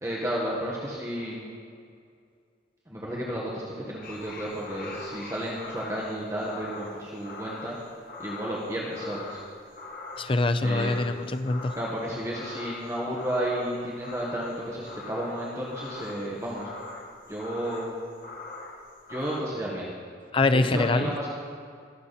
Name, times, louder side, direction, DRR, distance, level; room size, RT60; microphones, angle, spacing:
voice 1, 0.0-1.4 2.9-7.8 8.2-9.4 10.6-11.0 11.7-16.7 17.3-17.9 19.1-19.9 20.5-21.3, right 1 dB, 15° right, -5 dB, 1.6 m, -32 dB
sound 1, 4.0-19.4, left 3 dB, 50° left, 1.5 m, -42 dB
voice 2, 10.2-11.8 20.3-21.1, left 2 dB, 30° left, 10 dB, 0.5 m, -24 dB
21.5 x 7.3 x 4.2 m, 2.2 s
head